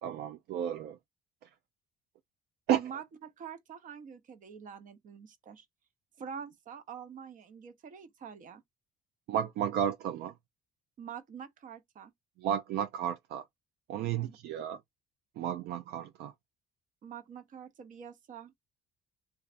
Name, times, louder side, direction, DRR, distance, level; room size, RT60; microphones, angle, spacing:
voice 1, 0.0-1.0 2.7-2.9 9.3-10.3 12.4-13.5 13.9-14.8 15.4-16.3, right 9 dB, 70° right, 0.4 m, -32 dB
voice 2, 2.8-5.7 6.2-8.6 11.0-12.1 14.1-14.4 17.0-18.5, right 7 dB, 50° right, 0.7 m, -46 dB
3.2 x 2.4 x 2.4 m
cardioid pair, 110°, 17 cm